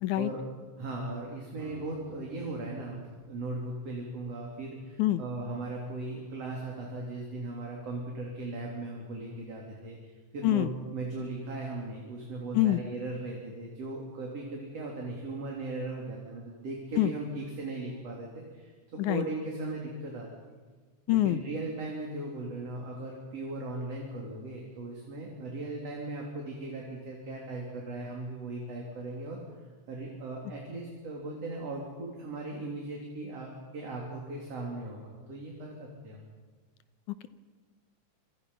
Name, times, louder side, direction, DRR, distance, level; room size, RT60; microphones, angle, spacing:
voice 1, 0.8-18.7 19.1-20.3 21.1-29.4 29.9-36.2, right 2 dB, 55° right, -1 dB, 4.3 m, -38 dB
Acoustic guitar, 1.6-5.7, right 4 dB, 80° right, 6.3 m, -55 dB
voice 2, 21.1-21.4 37.1-37.3, left 15 dB, 85° left, 12 dB, 2.4 m, -25 dB
27.0 x 26.5 x 5.6 m, 1.4 s
omnidirectional pair, 3.5 m